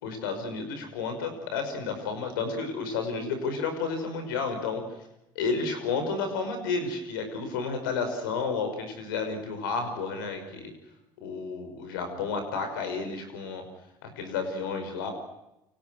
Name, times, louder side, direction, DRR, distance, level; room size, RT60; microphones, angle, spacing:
voice 1, 0.0-4.8 5.4-10.7 11.2-13.6 14.0-15.1, left 4 dB, 85° left, 7 dB, 5.7 m, -31 dB
29.0 x 25.0 x 6.3 m, 0.90 s
hypercardioid pair, 75°, 11 cm